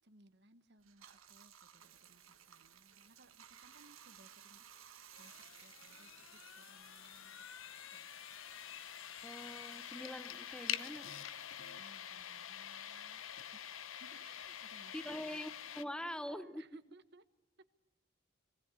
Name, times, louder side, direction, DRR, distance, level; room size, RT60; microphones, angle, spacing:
voice 1, 0.0-4.6 4.9-7.4 7.9-8.1 11.8-13.2 13.5-13.6 14.0-15.6 16.0-17.2, right 2 dB, 55° right, 1.2 m, -64 dB
Bathtub (filling or washing), 0.8-13.6 13.9-15.8, right 9 dB, 90° right, 1.5 m, -61 dB
sound 1, 5.1-15.8, left 10 dB, 80° left, 0.9 m, -46 dB
voice 2, 9.2-11.2 14.9-16.7, left 1 dB, 5° left, 0.7 m, -44 dB
19.5 x 18.5 x 8.3 m
head